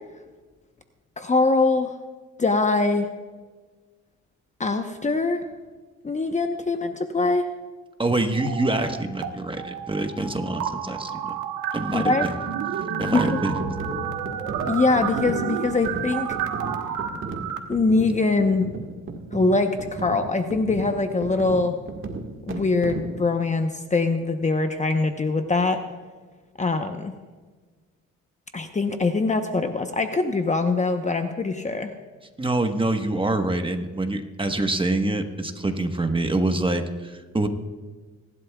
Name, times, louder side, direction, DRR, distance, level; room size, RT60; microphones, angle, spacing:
voice 1, 1.2-1.9 2.4-3.1 4.6-5.4 6.0-7.4 11.9-12.2 13.1-13.4 14.6-16.3 17.7-18.7 19.3-21.7 22.5-25.8 26.6-27.1 28.5-31.9, left 3 dB, 25° left, 6 dB, 0.9 m, -23 dB
voice 2, 8.0-11.4 11.7-12.3 13.0-13.6 32.4-37.5, right 2 dB, 15° right, 6 dB, 1.3 m, -25 dB
sound 1, 8.3-9.3 9.6-17.6, right 8 dB, 85° right, 1.3 m, -30 dB
sound 2, 13.6-23.2, right 4 dB, 45° right, 1.7 m, -35 dB
26.0 x 11.5 x 2.4 m, 1.4 s
cardioid pair, 90°, 30 cm